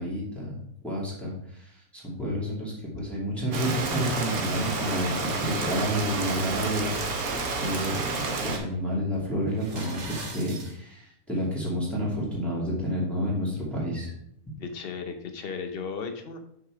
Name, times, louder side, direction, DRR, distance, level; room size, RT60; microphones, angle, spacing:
voice 1, 0.0-7.0 7.2-14.1, equal, ahead, -6 dB, 2.5 m, -30 dB
Rain, 3.5-8.6, right 3 dB, 75° right, 1.6 m, -30 dB
voice 2, 5.1-5.5 14.6-16.4, left 5 dB, 45° left, 6 dB, 1.0 m, -36 dB
sound 1, 9.5-10.7, right 3 dB, 55° right, 1.5 m, -39 dB
6.1 x 6.0 x 4.7 m, 0.72 s
omnidirectional pair, 1.6 m